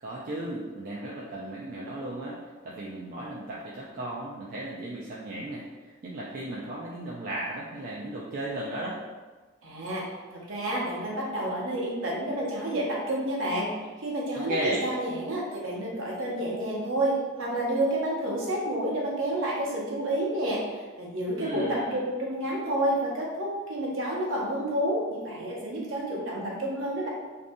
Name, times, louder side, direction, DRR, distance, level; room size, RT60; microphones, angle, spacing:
voice 1, 0.0-9.0 14.4-14.9 21.4-22.0, right 1 dB, 45° right, -5 dB, 0.3 m, -35 dB
voice 2, 9.6-10.1 10.3-13.7 14.0-20.6 21.0-27.1, right 1 dB, 70° right, -4 dB, 0.7 m, -29 dB
2.6 x 2.2 x 2.6 m, 1.3 s
head